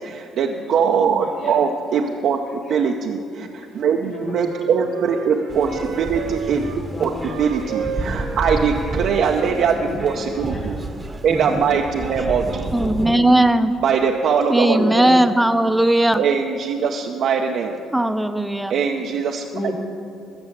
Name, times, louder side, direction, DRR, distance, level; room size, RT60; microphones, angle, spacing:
voice 1, 0.0-2.4 2.7-6.7 7.0-10.8 11.2-12.5 13.8-15.1 16.2-17.8 18.7-19.7, right 6 dB, 65° right, 2 dB, 0.7 m, -21 dB
Wind instrument woodwind instrument, 3.8-6.8 7.2-10.6, right 5 dB, 85° right, 1.1 m, -34 dB
voice 2, 4.0-4.5 6.9-7.3 9.8-9.9 10.5-11.4 13.1-13.2 14.7-15.2 19.5-19.7, left 1 dB, 55° left, -1 dB, 2.6 m, -31 dB
sound 1, 5.5-13.1, right 2 dB, 25° right, 1.0 m, -29 dB
voice 3, 12.7-13.7 14.5-16.2 17.9-18.7, right 1 dB, 5° right, 9 dB, 0.8 m, -17 dB
14.5 x 6.3 x 7.6 m, 2.4 s
supercardioid pair, 65°, 0 cm